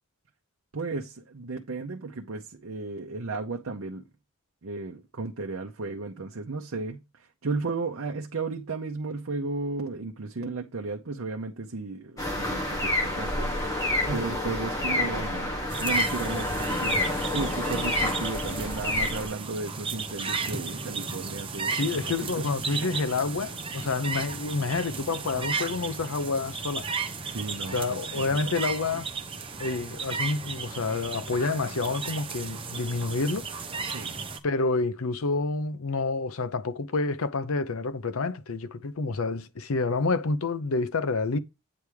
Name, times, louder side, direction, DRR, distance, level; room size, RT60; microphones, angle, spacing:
voice 1, 0.7-4.1 4.6-13.5 14.1-22.3 27.2-28.6 33.8-34.1, right 3 dB, 70° right, 0.7 m, -34 dB
sound 1, 12.2-19.3, left 1 dB, 15° left, 1.7 m, -28 dB
sound 2, 15.7-34.4, right 4 dB, 25° right, 0.8 m, -34 dB
voice 2, 21.7-26.9 27.7-29.1 29.6-33.5 34.4-41.4, left 3 dB, 80° left, 0.7 m, -28 dB
8.7 x 3.5 x 4.7 m
head